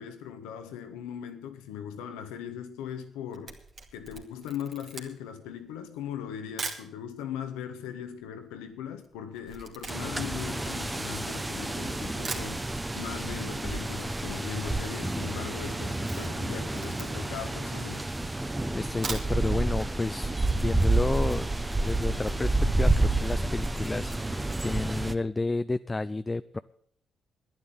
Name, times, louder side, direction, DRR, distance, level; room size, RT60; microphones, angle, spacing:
voice 1, 0.0-3.6 3.9-12.6 12.9-18.0, left 9 dB, 90° left, 1.5 m, -39 dB
Camera, 3.1-6.9 7.6-7.7 7.9-11.6 11.9-12.0 12.2-13.1 13.4-13.5 13.8-13.9 14.0-14.5 14.8-15.0 15.4-17.4 17.9-18.0 18.8-19.6 20.0-20.1 20.4-20.5, right 4 dB, 55° right, 2.4 m, -41 dB
sound 1, 9.9-25.1, right 2 dB, 15° right, 1.1 m, -29 dB
voice 2, 18.7-21.5 21.8-26.6, left 3 dB, 25° left, 0.5 m, -31 dB
11.0 x 9.9 x 8.6 m
supercardioid pair, 55°, 0 cm